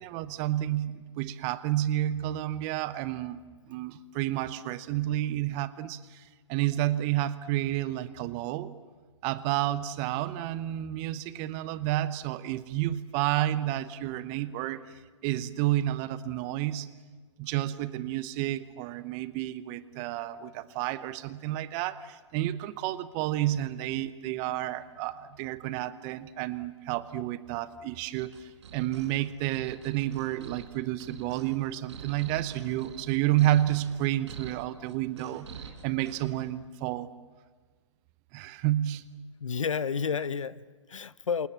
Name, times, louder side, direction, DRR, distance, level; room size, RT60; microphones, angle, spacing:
voice 1, 0.0-8.7 9.2-16.9 17.4-37.1 38.3-39.1, right 14 dB, 25° right, 15 dB, 0.9 m, -30 dB
sound 1, 28.2-36.4, right 6 dB, 60° right, 5.4 m, -46 dB
voice 2, 39.4-41.5, left 6 dB, 75° left, 18 dB, 1.0 m, -31 dB
29.0 x 27.0 x 7.4 m, 1.4 s
hypercardioid pair, 140°, 16 cm